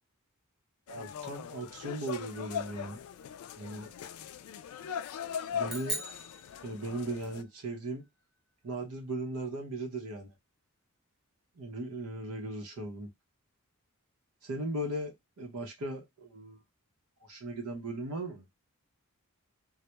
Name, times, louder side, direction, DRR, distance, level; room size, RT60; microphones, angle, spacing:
sound 1, 0.9-7.4, left 8 dB, 75° left, 0.3 m, -40 dB
voice 1, 0.9-3.0 3.6-3.9 5.5-6.0 6.6-8.0 8.6-10.3 11.6-13.1 14.4-16.6 17.2-18.4, right 2 dB, 85° right, 0.7 m, -38 dB
sound 2, 5.6-7.3, equal, ahead, 0.5 m, -40 dB
2.2 x 2.0 x 2.8 m
head